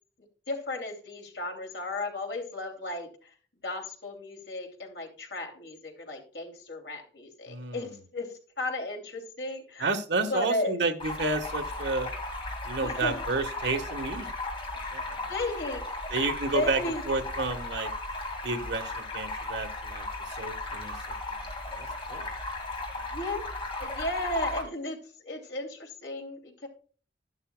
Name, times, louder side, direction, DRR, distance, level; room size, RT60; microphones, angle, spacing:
voice 1, 0.5-3.3 3.6-9.9 10.3-10.8 12.8-13.2 15.3-15.9 16.5-17.0 23.0-23.4 23.8-26.7, left 2 dB, 75° left, 2 dB, 2.8 m, -35 dB
voice 2, 7.5-7.9 9.8-12.1 12.6-14.3 14.9-15.3 16.1-16.8 17.1-17.9 18.4-21.0 21.3-21.5 21.7-22.3, right 3 dB, 75° right, 6 dB, 1.3 m, -31 dB
Stream, 11.0-24.6, left 2 dB, 30° left, 2.2 m, -36 dB
12.0 x 11.0 x 2.3 m, 0.41 s
head